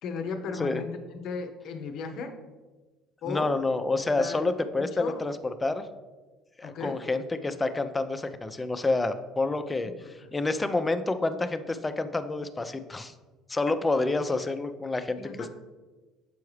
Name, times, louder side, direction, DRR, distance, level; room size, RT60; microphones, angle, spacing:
voice 1, 0.0-2.4 3.2-3.5 4.1-4.4 4.9-5.3 6.6-7.0 10.0-10.4 15.2-15.5, left 5 dB, 60° left, 6 dB, 0.6 m, -36 dB
voice 2, 3.3-5.9 6.6-13.1 13.5-15.2, left 2 dB, 20° left, 9 dB, 0.5 m, -28 dB
7.0 x 4.5 x 3.2 m, 1.3 s
hypercardioid pair, 65°, 0 cm